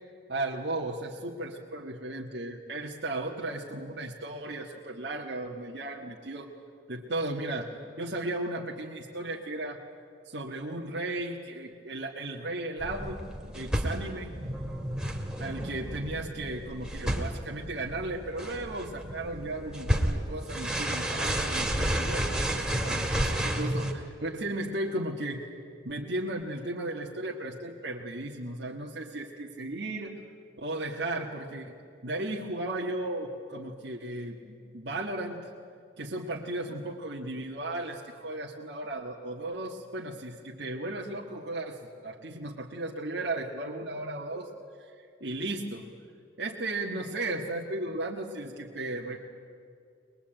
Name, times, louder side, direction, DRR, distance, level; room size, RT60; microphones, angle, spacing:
voice 1, 0.3-6.5 6.9-9.8 10.2-13.2 13.5-14.3 15.4-25.5 25.8-30.2 30.6-31.7 32.0-35.5 36.0-44.5 44.8-45.9 46.4-49.2, right 2 dB, 65° right, -2 dB, 1.7 m, -35 dB
sound 1, 12.8-23.9, right 1 dB, 5° right, 2.2 m, -31 dB
22.5 x 21.5 x 9.0 m, 2.4 s
head